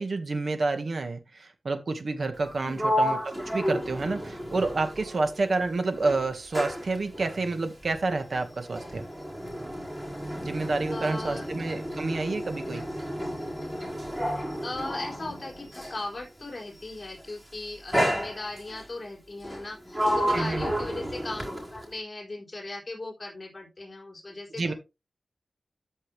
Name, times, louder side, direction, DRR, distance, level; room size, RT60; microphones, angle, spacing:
voice 1, 0.0-3.2 3.5-9.0 10.4-12.8 20.3-20.7 24.6-24.7, right 3 dB, 65° right, 7 dB, 1.8 m, -29 dB
Sliding door, 2.3-5.6 5.9-16.1 17.0-17.3 17.9-18.8 19.4-22.0, equal, 10° right, 4.8 m, -32 dB
voice 2, 2.6-2.9 10.9-11.5 14.6-24.7, left 2 dB, 35° left, -2 dB, 4.2 m, -38 dB
13.5 x 5.6 x 3.4 m, 0.25 s
wide cardioid pair, 100°, 0 cm